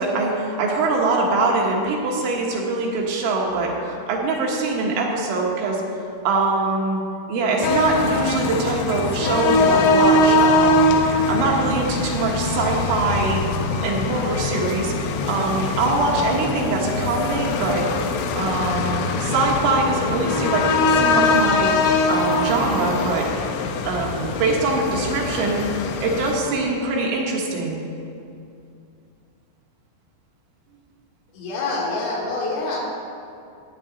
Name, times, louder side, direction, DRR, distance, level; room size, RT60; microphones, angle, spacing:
voice 1, 0.0-5.8 6.3-7.0 7.3-13.4 13.8-14.9 15.3-17.9 18.4-21.8 22.1-23.3 23.9-25.7 26.0-27.8, right 3 dB, 75° right, -2 dB, 3.6 m, -23 dB
sound 1, 7.6-26.4, left 3 dB, 85° left, 2.3 m, -22 dB
voice 2, 31.3-32.8, left 3 dB, 70° left, -4 dB, 3.9 m, -26 dB
14.5 x 9.2 x 3.9 m, 2.5 s
omnidirectional pair, 5.7 m